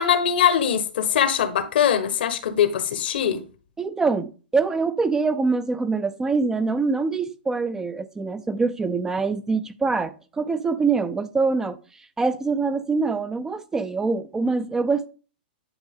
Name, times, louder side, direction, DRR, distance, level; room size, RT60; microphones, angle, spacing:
voice 1, 0.0-3.4, left 8 dB, 75° left, 1.2 m, -21 dB
voice 2, 3.8-11.8 12.2-15.1, right 4 dB, 10° right, 0.4 m, -24 dB
10.0 x 4.4 x 3.7 m
hypercardioid pair, 145°, 5 cm